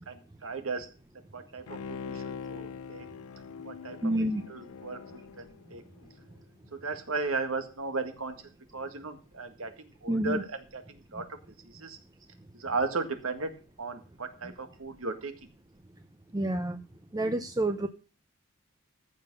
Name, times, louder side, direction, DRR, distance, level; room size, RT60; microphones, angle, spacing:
voice 1, 0.1-0.9 1.3-3.1 3.6-4.0 4.5-5.8 6.7-8.3 8.7-10.8 11.1-11.3 11.7-12.0 12.5-13.5 13.8-15.3, right 3 dB, 75° right, 7 dB, 1.9 m, -35 dB
Bowed string instrument, 1.7-6.3 6.7-6.8, left 6 dB, 85° left, 0.5 m, -43 dB
voice 2, 4.0-4.4 10.1-10.4 11.1-11.2 14.4-14.5 16.3-16.8 17.1-17.9, right 1 dB, 15° right, 7 dB, 0.6 m, -29 dB
14.5 x 5.7 x 5.5 m, 0.36 s
head